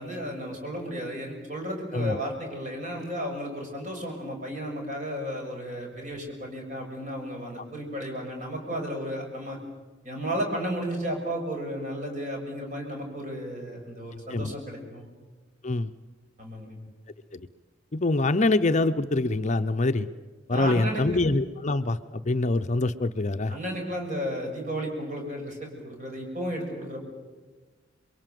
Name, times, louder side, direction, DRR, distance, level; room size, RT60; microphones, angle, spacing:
voice 1, 0.0-9.6 10.0-15.1 16.4-16.8 20.5-21.0 23.5-27.0, equal, 40° right, 1 dB, 6.5 m, -33 dB
voice 2, 17.9-20.1 20.5-23.5, left 2 dB, 40° left, 9 dB, 0.7 m, -25 dB
28.0 x 23.0 x 7.7 m, 1.4 s
head